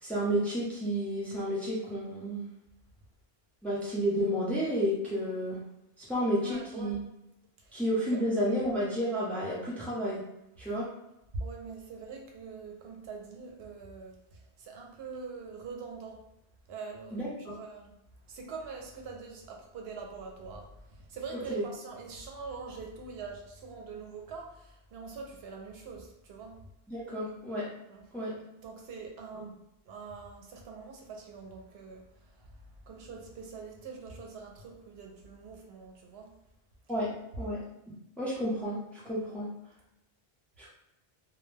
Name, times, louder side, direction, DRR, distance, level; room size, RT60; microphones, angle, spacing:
voice 1, 0.0-2.5 3.6-5.6 6.0-7.0 7.7-10.2 10.6-10.9 17.1-17.6 21.5-21.6 26.9-27.6 28.1-28.3 36.9-37.1 37.4-37.6 38.2-39.5 40.6-40.7, equal, ahead, -7 dB, 0.6 m, -31 dB
voice 2, 6.4-7.0 7.6-7.8 8.1-8.2 11.3-16.2 16.7-18.0 18.3-26.7 27.9-28.1 28.6-36.3 39.3-39.5, right 4 dB, 80° right, 1 dB, 0.8 m, -44 dB
2.1 x 2.1 x 3.2 m, 0.87 s
omnidirectional pair, 1.0 m